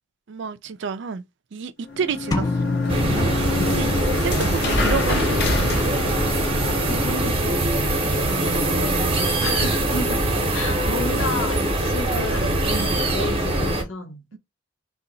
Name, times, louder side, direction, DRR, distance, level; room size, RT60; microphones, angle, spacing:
voice 1, 0.3-1.2 1.5-2.8 3.6-4.0 4.2-6.0 8.2-9.3 12.7-13.0 14.3-14.4, right 5 dB, 60° right, 0.4 m, -30 dB
sound 1, 1.9-7.4, left 2 dB, 55° left, 0.7 m, -26 dB
sound 2, 2.3-4.3, left 3 dB, 20° left, 0.3 m, -27 dB
sound 3, 2.9-13.8, right 1 dB, 30° right, 0.8 m, -23 dB
voice 2, 3.4-3.8 6.8-7.8 9.4-10.2 10.5-12.7 13.1-14.2, left 1 dB, 85° left, 0.9 m, -32 dB
2.8 x 2.3 x 3.9 m
head